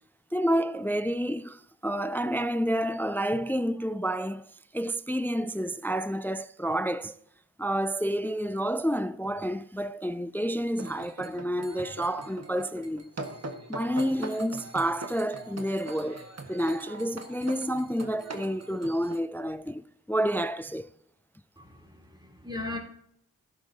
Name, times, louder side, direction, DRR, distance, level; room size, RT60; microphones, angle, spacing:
voice 1, 0.3-4.4 4.7-7.2 7.6-13.1 13.7-20.9, equal, 5° left, 0.3 m, -29 dB
sound 1, 10.8-19.2, right 2 dB, 45° right, 1.5 m, -42 dB
voice 2, 21.6-22.8, left 2 dB, 10° right, 3.2 m, -38 dB
12.5 x 11.5 x 2.7 m
cardioid pair, 40°, 37 cm